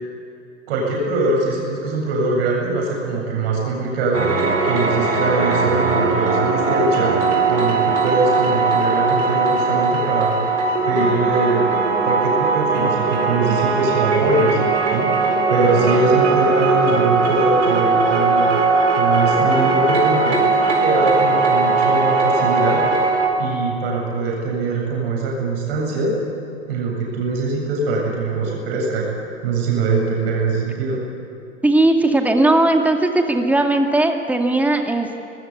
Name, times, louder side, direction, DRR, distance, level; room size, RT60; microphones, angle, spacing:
voice 1, 0.7-7.1 7.5-11.7 12.0-14.6 14.9-18.5 18.9-20.4 20.8-22.8 23.4-26.2 26.7-31.0, right 3 dB, 50° right, -2 dB, 8.0 m, -22 dB
sound 1, 4.1-23.3, right 4 dB, 70° right, 4.6 m, -19 dB
voice 2, 31.6-35.2, right 2 dB, 5° right, 4 dB, 2.3 m, -17 dB
26.0 x 21.0 x 8.5 m, 2.7 s
figure-of-eight pair, 100°, 37 cm